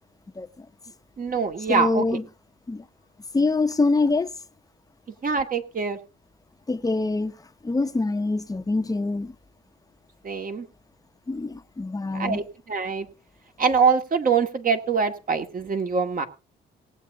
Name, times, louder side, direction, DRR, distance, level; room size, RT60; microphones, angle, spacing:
voice 1, 0.3-0.7 1.7-2.2 2.7-2.9 3.3-4.3 6.7-7.3 7.6-9.3 11.3-12.4, left 3 dB, 20° left, 1.0 m, -25 dB
voice 2, 1.2-2.0 5.2-6.0 10.2-10.7 12.1-13.1 13.6-16.3, right 5 dB, 45° right, 2.1 m, -24 dB
19.0 x 8.1 x 3.8 m
cardioid pair, 90°, 20 cm